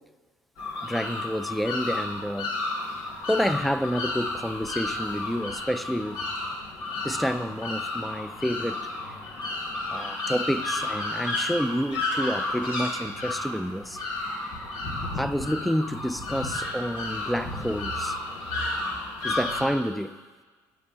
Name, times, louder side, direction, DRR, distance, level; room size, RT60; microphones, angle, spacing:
sound 1, 0.6-19.6, left 2 dB, 70° left, 2.0 m, -32 dB
voice 1, 0.8-2.5 3.3-6.2 7.0-8.8 9.9-14.0 15.2-18.2 19.2-20.1, equal, ahead, 13 dB, 0.4 m, -29 dB
15.0 x 6.4 x 2.8 m, 1.4 s
supercardioid pair, 80°, 8 cm